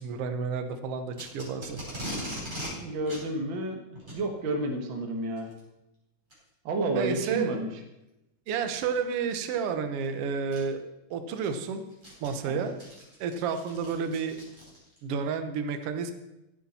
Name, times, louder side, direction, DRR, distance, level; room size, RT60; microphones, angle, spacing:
voice 1, 0.0-1.8 6.9-7.6 8.5-10.8 11.1-11.8 12.2-12.8 13.2-14.4 15.0-16.1, right 6 dB, 65° right, 8 dB, 1.6 m, -31 dB
Packing tape duct tape, 1.1-2.7 3.1-3.2 4.0-4.2 5.4-5.6 6.3-6.4 7.0-7.1 8.7-9.0 10.0-10.1 10.5-10.6 11.1-15.0, equal, 15° right, 4.5 m, -40 dB
voice 2, 2.7-3.8 4.1-5.5 6.6-7.7 12.4-12.7, right 2 dB, 45° right, 3 dB, 1.8 m, -30 dB
15.0 x 8.9 x 4.2 m, 0.93 s
omnidirectional pair, 3.7 m